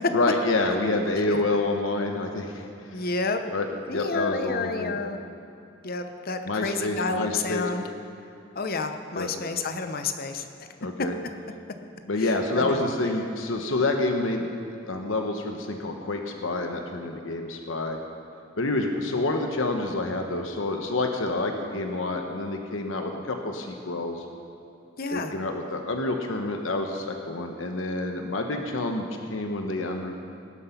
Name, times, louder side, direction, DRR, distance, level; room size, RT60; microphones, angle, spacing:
voice 1, 0.1-2.9 3.5-5.0 6.5-7.7 9.1-9.3 10.8-11.1 12.1-14.5 14.9-18.0 18.6-24.2 25.1-30.2, left 2 dB, 80° left, 4 dB, 1.0 m, -28 dB
voice 2, 2.9-3.4 3.9-5.2 5.8-7.8 8.5-10.7 12.2-12.8 25.0-25.3, left 3 dB, 50° left, 7 dB, 0.9 m, -30 dB
18.0 x 7.8 x 5.9 m, 2.7 s
head